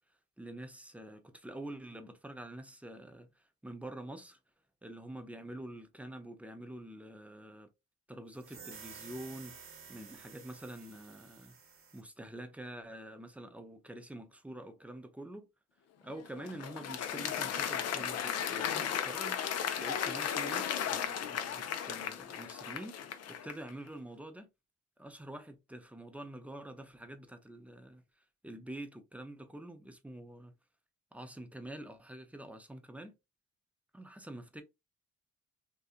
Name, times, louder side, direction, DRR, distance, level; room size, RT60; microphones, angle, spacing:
voice 1, 0.4-4.4 4.8-7.7 8.1-11.6 11.9-15.5 16.0-24.5 25.0-28.0 28.4-30.6 31.1-33.2 33.9-34.6, right 1 dB, 5° right, 0.5 m, -47 dB
sound 1, 8.4-12.0, right 6 dB, 45° right, 0.9 m, -52 dB
Applause, 16.1-23.7, left 8 dB, 55° left, 0.5 m, -35 dB
2.7 x 2.4 x 2.4 m
cardioid pair, 90°, 30 cm